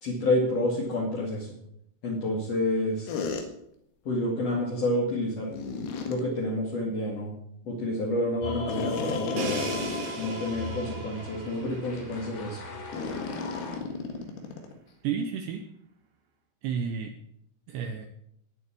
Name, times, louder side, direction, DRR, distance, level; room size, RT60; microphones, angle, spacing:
voice 1, 0.0-1.5 2.0-3.2 4.0-5.5 6.1-7.3 7.6-9.7 10.2-12.6, left 1 dB, 40° left, -3 dB, 2.6 m, -29 dB
sound 1, 3.1-3.4 5.5-6.2 8.7-10.4 10.8-10.9 11.5-11.7 12.9-14.7, left 4 dB, 80° left, 4.5 m, -33 dB
sound 2, 8.4-13.8, left 3 dB, 60° left, 5.0 m, -39 dB
Crash cymbal, 9.4-13.2, right 5 dB, 55° right, 3.0 m, -39 dB
voice 2, 15.0-15.6 16.6-17.1 17.7-18.1, right 7 dB, 80° right, 6 dB, 2.6 m, -31 dB
19.0 x 7.0 x 8.7 m, 0.75 s
omnidirectional pair, 6.0 m